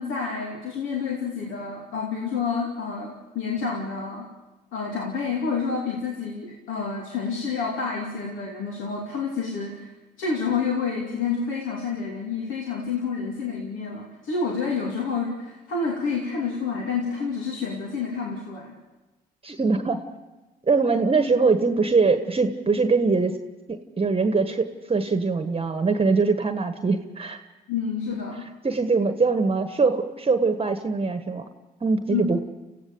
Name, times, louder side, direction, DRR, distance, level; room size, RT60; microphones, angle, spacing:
voice 1, 0.0-4.3 4.7-9.9 10.2-18.7 27.7-28.5 32.1-32.2, left 5 dB, 70° left, -1 dB, 2.8 m, -29 dB
voice 2, 19.4-20.0 20.7-23.4 23.7-27.4 28.6-31.4 31.8-32.4, right 4 dB, 25° right, 8 dB, 1.3 m, -22 dB
29.0 x 15.5 x 6.9 m, 1.1 s
hypercardioid pair, 55°, 21 cm